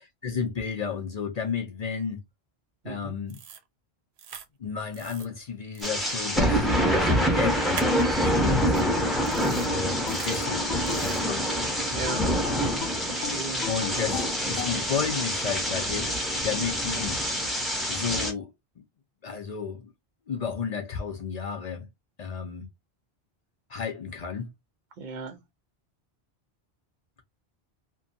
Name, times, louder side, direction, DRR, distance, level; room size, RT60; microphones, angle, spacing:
voice 1, 0.2-2.2 2.8-3.4 4.6-6.7 6.9-9.0 9.7-11.3 11.9-12.3 13.7-17.2 17.9-18.5 19.2-19.9 20.3-21.8 22.2-22.7 23.7-24.5, left 6 dB, 50° left, 0.5 m, -32 dB
voice 2, 2.8-3.2 9.4-9.7 11.9-12.2 12.6-13.6 25.0-25.4, right 4 dB, 55° right, 0.7 m, -37 dB
sound 1, 3.3-3.6 4.2-4.5 4.9-5.2 5.7-5.9 7.7-8.1 8.7-8.8 9.3-9.7 10.1-10.5 10.8-11.2, right 8 dB, 85° right, 0.9 m, -41 dB
sound 2, 5.8-18.3, equal, ahead, 0.7 m, -26 dB
sound 3, 9.0-11.5 12.1-14.8, left 8 dB, 85° left, 0.8 m, -36 dB
2.6 x 2.2 x 2.5 m
omnidirectional pair, 1.1 m